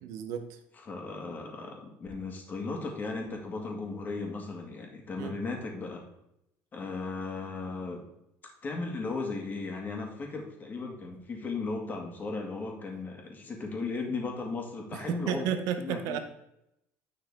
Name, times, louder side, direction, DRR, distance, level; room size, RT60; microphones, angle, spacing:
voice 1, 0.0-0.6 5.2-5.3 14.9-16.2, right 9 dB, 75° right, 7 dB, 0.8 m, -32 dB
voice 2, 0.9-6.0 6.7-8.0 8.6-15.5 15.8-16.2, left 3 dB, 30° left, 1 dB, 2.0 m, -36 dB
9.7 x 5.9 x 3.6 m, 0.81 s
cardioid pair, 115°, 6 cm